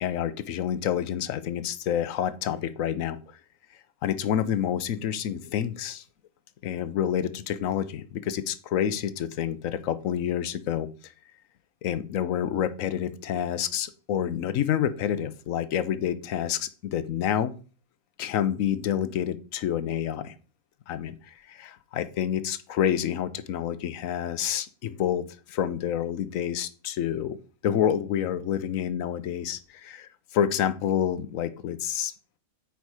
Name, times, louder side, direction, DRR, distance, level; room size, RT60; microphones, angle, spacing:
voice 1, 0.0-3.2 4.0-6.0 6.6-10.9 11.8-17.5 18.2-20.3 20.9-21.2 21.5-32.1, left 9 dB, 75° left, 14 dB, 1.1 m, -28 dB
8.4 x 4.8 x 4.7 m, 0.37 s
omnidirectional pair, 1.4 m